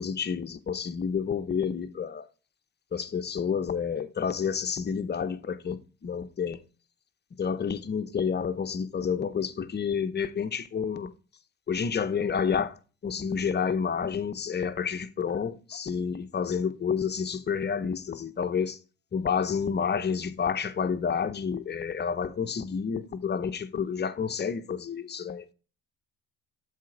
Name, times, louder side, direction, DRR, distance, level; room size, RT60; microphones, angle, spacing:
voice 1, 0.0-2.2 2.9-6.6 7.4-11.1 11.7-12.8 13.0-18.8 19.1-25.5, left 6 dB, 35° left, 0.8 m, -29 dB
7.5 x 4.2 x 5.7 m
supercardioid pair, 75°, 31 cm